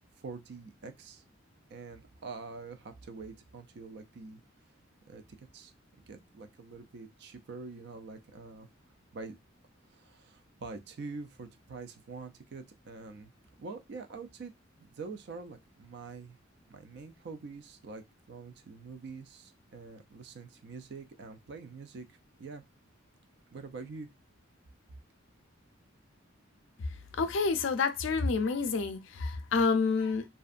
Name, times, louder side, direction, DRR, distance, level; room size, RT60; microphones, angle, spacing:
voice 1, 0.2-1.2 1.7-4.4 5.1-5.2 5.5-5.7 6.1-8.7 9.1-9.4 9.9-13.3 13.6-14.5 14.8-16.4 16.7-18.0 18.3-22.1 22.4-22.7 23.5-24.1, right 4 dB, 55° right, 0.4 m, -45 dB
voice 2, 27.1-30.3, left 4 dB, 65° left, 0.4 m, -28 dB
2.5 x 2.2 x 2.4 m
head